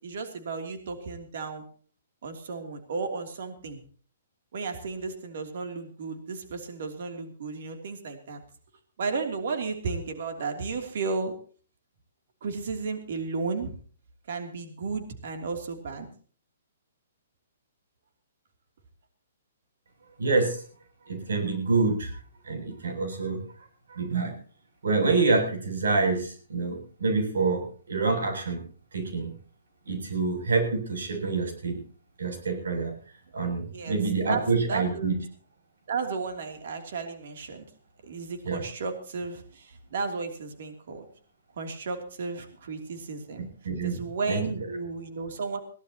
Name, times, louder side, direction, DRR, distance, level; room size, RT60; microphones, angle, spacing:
voice 1, 0.0-1.6 2.2-3.8 4.5-8.4 9.0-11.3 12.4-13.7 14.3-16.1 33.7-34.0 34.3-35.2 35.9-37.7 38.0-41.1 41.6-43.5 43.8-45.6, right 4 dB, 50° right, 5 dB, 3.0 m, -33 dB
voice 2, 20.2-20.6 21.1-22.1 22.5-23.4 23.9-24.3 24.8-28.6 28.9-29.3 29.9-31.8 32.2-32.9 33.3-35.2 38.4-38.6 43.6-44.0 44.3-44.4, right 4 dB, 80° right, 5 dB, 7.8 m, -26 dB
22.0 x 16.5 x 3.0 m, 0.42 s
hypercardioid pair, 175°, 0 cm